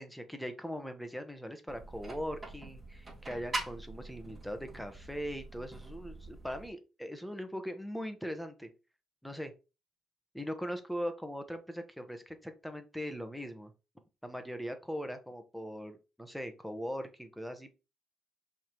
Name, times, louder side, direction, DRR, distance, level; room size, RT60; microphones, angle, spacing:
voice 1, 0.0-8.7 9.2-9.5 10.3-13.7 14.2-17.7, equal, ahead, 7 dB, 1.2 m, -40 dB
sound 1, 1.7-6.7, right 2 dB, 20° right, 3.0 m, -43 dB
5.7 x 3.6 x 4.5 m, 0.30 s
cardioid pair, 90°, 0 cm